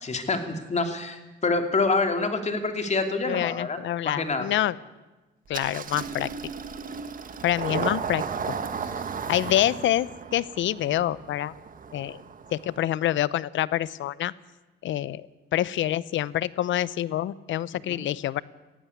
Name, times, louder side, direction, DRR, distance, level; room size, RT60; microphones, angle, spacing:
voice 1, 0.0-3.8 4.0-4.4 17.9-18.0, left 3 dB, 35° left, 6 dB, 2.8 m, -26 dB
voice 2, 3.3-4.8 5.5-6.3 7.4-8.5 9.3-11.5 11.9-12.2 12.5-14.3 14.8-15.3 15.5-18.4, left 13 dB, 75° left, 20 dB, 0.7 m, -26 dB
Engine starting, 5.5-12.8, right 6 dB, 45° right, 1.4 m, -35 dB
18.0 x 15.0 x 9.8 m, 1.2 s
cardioid pair, 90°, 20 cm